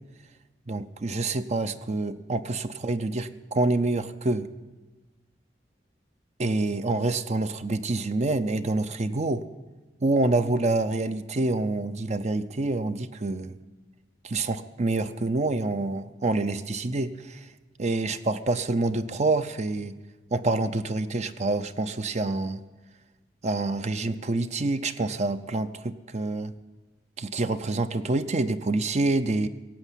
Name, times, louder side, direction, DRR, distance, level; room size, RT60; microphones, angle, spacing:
voice 1, 0.7-4.5 6.4-9.5 10.0-13.6 14.2-17.4 17.8-19.9 20.3-22.6 23.4-26.5 27.2-29.5, right 2 dB, 40° right, 10 dB, 0.6 m, -27 dB
16.5 x 8.2 x 9.8 m, 1.2 s
head